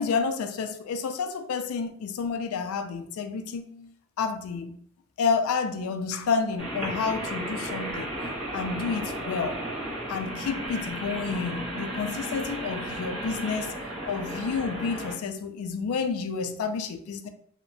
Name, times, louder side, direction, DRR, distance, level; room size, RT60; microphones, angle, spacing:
voice 1, 0.0-4.7 5.2-8.1 8.5-9.6 10.1-13.7 14.1-17.3, left 5 dB, 85° left, 8 dB, 0.3 m, -30 dB
sound 1, 6.6-15.1, right 1 dB, 30° right, 1.0 m, -34 dB
2.8 x 2.1 x 2.6 m, 0.63 s
head